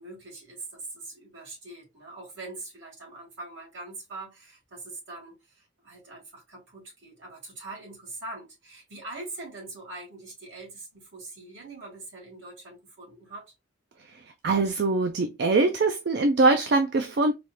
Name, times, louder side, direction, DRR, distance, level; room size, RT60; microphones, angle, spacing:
voice 1, 0.0-13.5, right 2 dB, 75° right, 2.3 m, -43 dB
voice 2, 14.4-17.3, right 3 dB, 55° right, 0.4 m, -22 dB
4.1 x 2.4 x 3.2 m
head